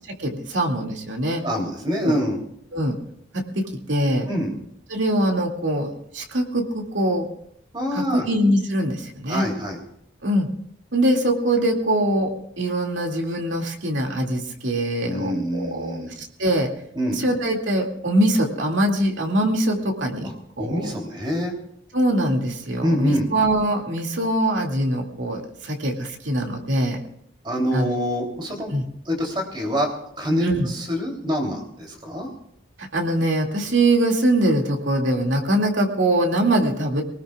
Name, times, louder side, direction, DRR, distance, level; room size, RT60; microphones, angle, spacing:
voice 1, 0.2-1.4 2.0-2.2 2.7-2.9 3.6-4.3 4.9-5.9 6.1-7.3 7.9-9.4 10.2-10.5 10.9-16.7 17.1-20.3 20.6-20.9 21.9-27.0 27.7-28.0 28.7-28.8 30.4-30.7 32.8-37.0, right 1 dB, 85° right, 1 dB, 2.4 m, -23 dB
voice 2, 1.4-2.4 4.3-4.5 7.7-8.2 9.3-9.8 15.0-16.1 16.9-17.2 20.2-20.3 20.6-21.5 22.8-23.3 27.4-28.7 29.0-29.9 30.2-32.3, equal, 25° right, 0 dB, 3.2 m, -25 dB
23.0 x 19.0 x 2.4 m, 0.71 s
head